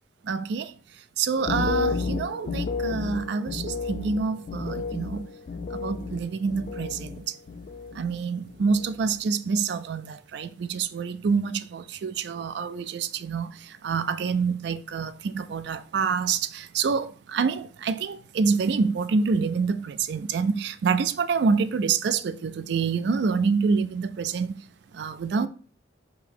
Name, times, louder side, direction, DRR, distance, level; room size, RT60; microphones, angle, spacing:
voice 1, 0.2-0.7 1.2-5.3 5.7-7.2 7.9-24.6 24.9-25.5, right 5 dB, 60° right, 0.3 m, -27 dB
sound 1, 1.4-7.2 7.5-8.2 8.5-8.9, left 4 dB, 45° left, 0.4 m, -32 dB
5.0 x 2.0 x 4.7 m
head